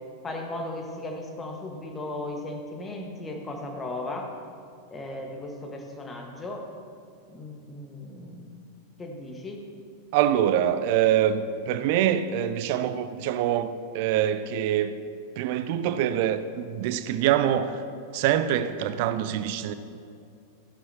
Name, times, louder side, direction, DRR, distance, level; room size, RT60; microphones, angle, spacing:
voice 1, 0.2-4.3 4.9-6.6 7.3-8.6 9.0-9.6, left 2 dB, 15° left, 2 dB, 1.6 m, -36 dB
voice 2, 10.1-14.9 15.4-17.8 18.1-19.7, right 10 dB, 50° right, 12 dB, 0.5 m, -25 dB
15.5 x 11.5 x 3.0 m, 2.4 s
figure-of-eight pair, 90°, 0 cm